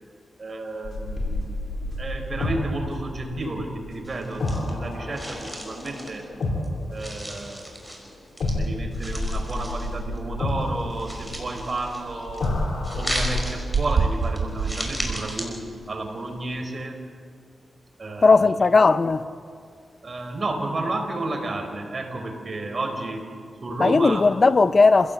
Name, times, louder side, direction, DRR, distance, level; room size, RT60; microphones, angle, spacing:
voice 1, 0.4-6.3 6.9-12.5 12.9-15.6 15.9-17.0 18.0-18.4 20.0-23.3 23.6-24.2, right 2 dB, 45° right, 4.5 m, -32 dB
sound 1, 0.8-7.9 8.4-13.4, left 2 dB, 70° left, 4.3 m, -30 dB
sound 2, 4.0-4.9 5.1-6.7 7.0-8.5 8.9-10.2 10.5-12.5 12.8-15.4, right 1 dB, 5° right, 5.2 m, -35 dB
sound 3, 11.7-11.8 12.2-12.7 13.0-15.3 16.4-16.5, right 5 dB, 70° right, 1.4 m, -27 dB
voice 2, 18.2-19.2 23.8-25.1, left 4 dB, 45° left, 0.7 m, -17 dB
28.0 x 17.0 x 8.0 m
cardioid pair, 85°, 0 cm